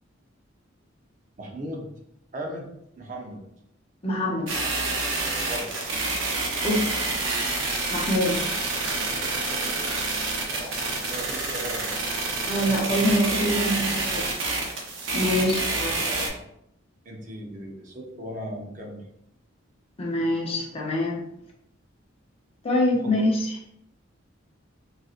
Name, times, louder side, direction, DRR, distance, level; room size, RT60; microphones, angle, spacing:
voice 1, 1.4-1.9 2.3-2.7 3.0-3.4 5.4-5.7 10.6-12.1 15.7-16.4 17.0-19.0 23.0-23.1, equal, 40° right, 0 dB, 0.6 m, -37 dB
voice 2, 4.0-4.5 6.6-6.9 7.9-8.4 12.4-14.2 15.1-15.9 20.0-21.2 22.6-23.6, left 1 dB, 30° left, -2 dB, 0.7 m, -24 dB
sound 1, 4.5-16.3, right 3 dB, 80° right, 0.7 m, -28 dB
4.1 x 2.6 x 2.4 m, 0.77 s
head